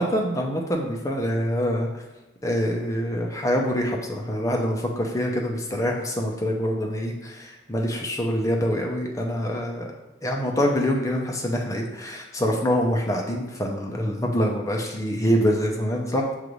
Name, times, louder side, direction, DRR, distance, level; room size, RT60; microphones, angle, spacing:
voice 1, 0.0-1.9 2.4-9.9 10.2-16.3, equal, 20° left, 0 dB, 0.6 m, -25 dB
6.4 x 2.5 x 3.0 m, 1.1 s
head